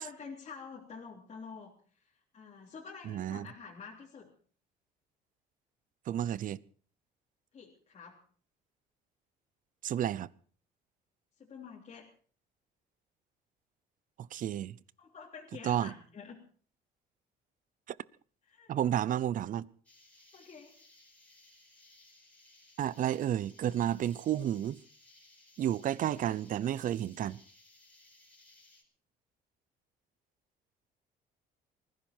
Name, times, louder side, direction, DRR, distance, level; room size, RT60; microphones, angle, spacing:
voice 1, 0.0-1.7 2.3-4.3 7.5-8.2 11.4-12.1 15.0-16.4 18.5-18.7 20.3-20.7, left 5 dB, 40° left, 3.5 m, -48 dB
voice 2, 3.1-3.5 6.1-6.6 9.8-10.3 14.3-14.8 15.6-15.9 17.9-18.0 18.7-19.7 22.8-24.8 25.6-27.4, right 11 dB, 50° right, 0.7 m, -31 dB
sound 1, 19.9-28.8, left 2 dB, 5° left, 5.1 m, -61 dB
19.5 x 15.5 x 4.5 m
cardioid pair, 110°, 17 cm